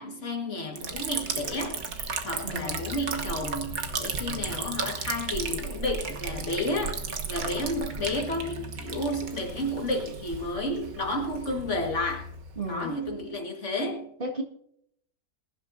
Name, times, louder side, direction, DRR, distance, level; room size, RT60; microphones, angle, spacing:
voice 1, 0.0-1.8 2.2-7.0 7.3-12.3 12.7-14.1, left 1 dB, 50° left, 2.0 m, -31 dB
Liquid, 0.8-13.2, right 4 dB, 70° right, 1.7 m, -35 dB
voice 2, 2.4-2.8 12.6-13.0 14.2-14.4, right 1 dB, 35° right, 2.0 m, -33 dB
21.5 x 11.5 x 2.6 m
omnidirectional pair, 1.6 m